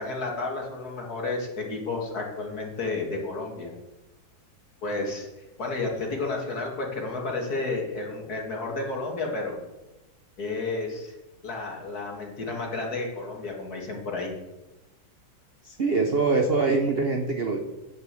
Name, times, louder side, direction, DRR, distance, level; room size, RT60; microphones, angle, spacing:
voice 1, 0.0-3.7 4.8-9.6 10.4-11.1 11.4-14.3, left 3 dB, 50° left, 0 dB, 2.6 m, -31 dB
voice 2, 15.7-17.6, right 3 dB, 50° right, 4 dB, 0.7 m, -24 dB
9.4 x 6.8 x 7.6 m, 1.0 s
omnidirectional pair, 2.1 m